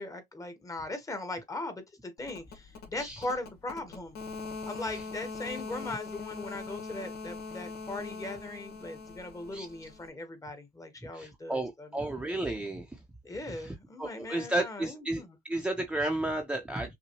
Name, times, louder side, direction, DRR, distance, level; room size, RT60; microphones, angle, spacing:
voice 1, 0.0-4.2 4.7-12.1 13.2-15.4, left 2 dB, 20° left, 1.3 m, -39 dB
sound 1, 2.2-10.1, left 4 dB, 70° left, 1.5 m, -42 dB
voice 2, 11.1-12.9 13.6-13.7 14.0-15.2 15.5-16.9, right 1 dB, 5° right, 0.8 m, -32 dB
6.0 x 2.3 x 3.0 m
cardioid pair, 110°, 17 cm